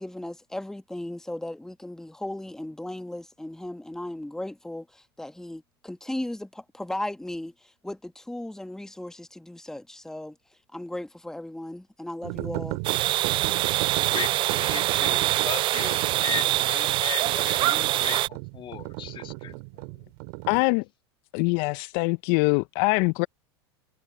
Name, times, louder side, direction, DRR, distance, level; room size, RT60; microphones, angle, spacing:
voice 1, 0.0-10.3 10.7-12.8, left 1 dB, 5° left, 1.5 m, -36 dB
sound 1, 12.2-20.6, right 30 dB, 60° right, 3.1 m, -35 dB
sound 2, 12.8-18.3, right 16 dB, 35° right, 0.3 m, -24 dB
voice 2, 14.1-19.6, left 10 dB, 35° left, 2.1 m, -37 dB
voice 3, 20.5-20.8 21.3-23.3, left 28 dB, 55° left, 0.8 m, -23 dB
hypercardioid pair, 90°, 14 cm